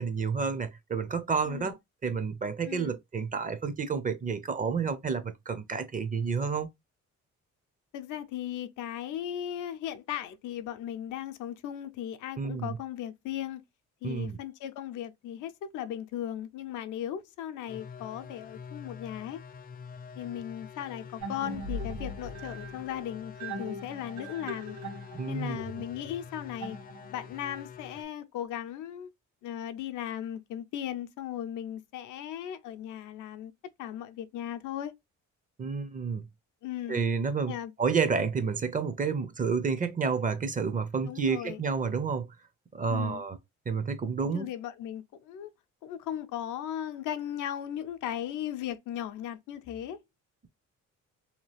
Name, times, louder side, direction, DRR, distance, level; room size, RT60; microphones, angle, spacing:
voice 1, 0.0-6.7 12.4-12.8 14.0-14.4 25.1-25.6 35.6-36.3 36.9-42.3 42.7-43.4 43.7-44.5, right 5 dB, 25° right, 0.5 m, -30 dB
voice 2, 2.7-3.0 7.9-13.6 14.0-19.4 20.2-24.8 25.3-26.8 27.1-29.1 29.4-33.5 33.8-34.9 36.6-37.0 37.5-37.7 41.0-41.6 42.9-43.2 44.3-45.5 45.8-50.0, left 10 dB, 80° left, 0.5 m, -37 dB
sound 1, 17.7-28.0, left 6 dB, 30° left, 0.4 m, -46 dB
sound 2, 21.2-27.4, equal, 70° right, 1.1 m, -40 dB
2.8 x 2.3 x 3.1 m
cardioid pair, 90°, 30 cm